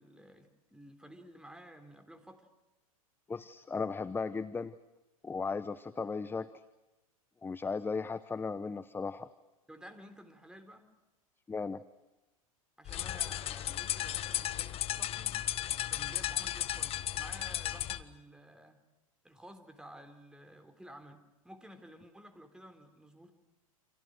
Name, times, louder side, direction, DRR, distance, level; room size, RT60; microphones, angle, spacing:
voice 1, 0.0-2.5 9.7-10.9 12.8-15.4 15.9-18.8 19.2-23.3, equal, 5° right, 8 dB, 3.5 m, -53 dB
voice 2, 3.3-4.7 5.2-6.5 7.4-9.3 11.5-11.8, left 4 dB, 10° left, 14 dB, 0.8 m, -36 dB
sound 1, 12.9-18.0, left 13 dB, 30° left, 1.2 m, -35 dB
29.5 x 27.0 x 6.4 m, 1.0 s
hypercardioid pair, 95°, 18 cm